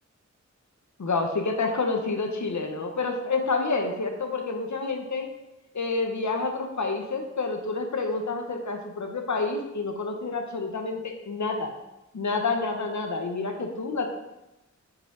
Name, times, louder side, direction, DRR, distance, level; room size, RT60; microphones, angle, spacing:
voice 1, 1.0-5.3 5.7-11.7 12.1-14.1, left 3 dB, 75° left, 3 dB, 1.0 m, -28 dB
7.5 x 4.7 x 3.9 m, 0.95 s
wide cardioid pair, 90°, 29 cm